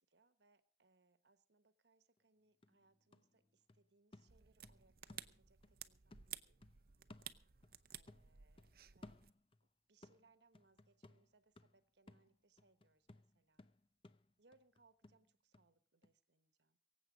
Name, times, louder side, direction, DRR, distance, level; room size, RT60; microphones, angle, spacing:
voice 1, 0.0-6.6 7.9-9.2 9.9-13.6 14.4-16.8, right 3 dB, 75° right, 12 dB, 1.2 m, -75 dB
sound 1, 2.2-2.3 2.6-5.8 6.1-7.8 8.1-9.7 10.0-15.7 16.0-16.1, left 2 dB, 30° left, 0.6 m, -62 dB
sound 2, 4.3-9.3, right 11 dB, 55° right, 0.7 m, -55 dB
24.0 x 8.0 x 5.1 m, 0.41 s
head